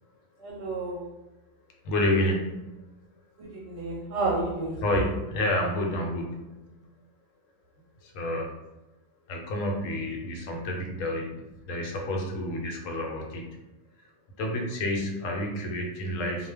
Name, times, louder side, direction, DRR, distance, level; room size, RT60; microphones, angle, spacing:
voice 1, 0.4-1.1 3.4-4.8, right 3 dB, 65° right, -3 dB, 0.8 m, -31 dB
voice 2, 1.8-2.9 4.8-6.9 8.0-8.6 9.3-13.6 14.0-14.1 14.4-16.5, left 1 dB, 75° left, 0 dB, 1.0 m, -30 dB
2.2 x 2.2 x 3.3 m, 1.0 s
omnidirectional pair, 1.4 m